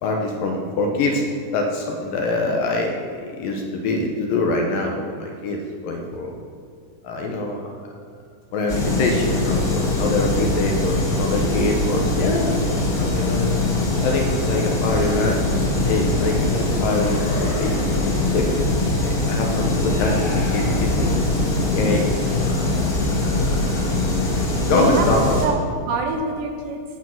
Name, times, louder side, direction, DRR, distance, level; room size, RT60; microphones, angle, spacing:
voice 1, 0.0-3.0 3.4-6.4 7.0-7.6 8.5-13.6 14.0-15.4 15.8-17.3 17.6-17.7 18.3-21.3 21.8-22.7 23.2-23.5 23.8-23.9 24.6-25.4, left 2 dB, 75° left, 1 dB, 2.6 m, -24 dB
sound 1, 8.7-25.5, left 2 dB, 35° left, 1.5 m, -22 dB
sound 2, 16.9-18.5 19.8-21.5, left 2 dB, 60° left, 1.1 m, -34 dB
voice 2, 23.4-23.9 24.7-26.8, right 3 dB, 70° right, 4 dB, 2.2 m, -26 dB
12.5 x 7.0 x 6.3 m, 2.1 s
omnidirectional pair, 4.2 m